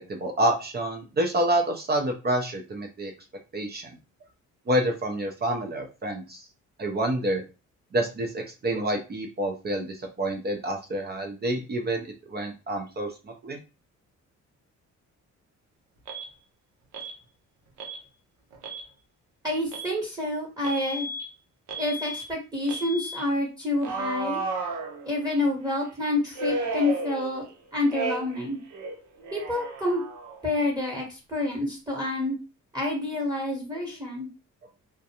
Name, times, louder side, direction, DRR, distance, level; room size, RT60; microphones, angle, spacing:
voice 1, 0.0-3.1 3.5-3.9 4.7-6.4 6.8-7.4 7.9-12.0 12.3-13.1 13.4-13.6, right 1 dB, 35° right, 3 dB, 0.6 m, -28 dB
Alarm, 16.1-16.3 16.9-17.2 17.8-18.0 18.5-18.9 19.7-19.9 20.6-21.2 21.7-22.2 22.7-23.2 23.8-25.4 26.3-27.5 27.9-28.4 28.7-30.4, right 3 dB, 75° right, 0.7 m, -33 dB
voice 2, 19.4-21.1 21.8-24.4 25.0-27.4 27.7-28.6 29.3-30.0 30.4-32.3 32.7-34.3, left 2 dB, 15° right, -1 dB, 1.0 m, -28 dB
2.4 x 2.1 x 2.8 m, 0.30 s
cardioid pair, 90°, 30 cm